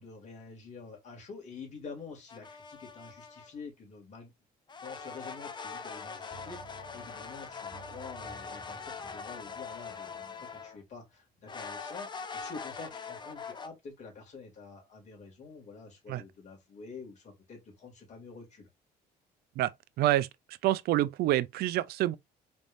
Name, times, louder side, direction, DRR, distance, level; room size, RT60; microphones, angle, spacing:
voice 1, 0.0-4.3 4.8-18.7, left 4 dB, 45° left, 2.3 m, -47 dB
sound 1, 2.3-3.5 4.7-10.8 11.5-13.7, left 5 dB, 25° left, 0.6 m, -42 dB
sound 2, 6.3-11.0 11.3-11.4, right 4 dB, 25° right, 0.9 m, -55 dB
voice 2, 19.6-20.3 20.6-22.2, right 14 dB, 70° right, 0.4 m, -27 dB
4.1 x 3.5 x 2.5 m
cardioid pair, 110°, 17 cm